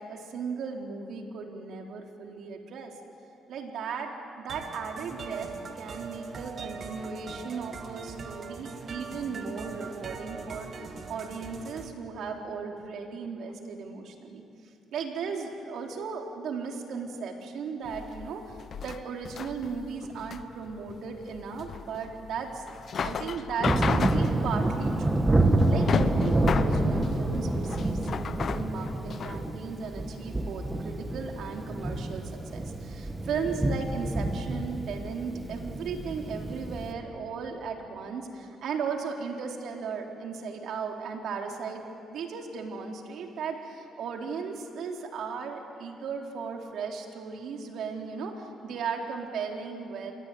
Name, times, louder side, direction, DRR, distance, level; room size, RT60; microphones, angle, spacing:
voice 1, 0.0-2.9 3.5-5.5 5.8-14.4 14.9-18.5 18.8-22.6 23.0-50.1, right 5 dB, 75° right, 2 dB, 3.7 m, -36 dB
sound 1, 4.5-11.9, right 4 dB, 50° right, 2.4 m, -41 dB
sound 2, 17.9-29.4, left 6 dB, 55° left, 1.1 m, -33 dB
Thunder, 23.6-36.9, right 2 dB, 20° right, 2.4 m, -28 dB
28.5 x 22.5 x 9.3 m, 2.8 s
cardioid pair, 90°, 0 cm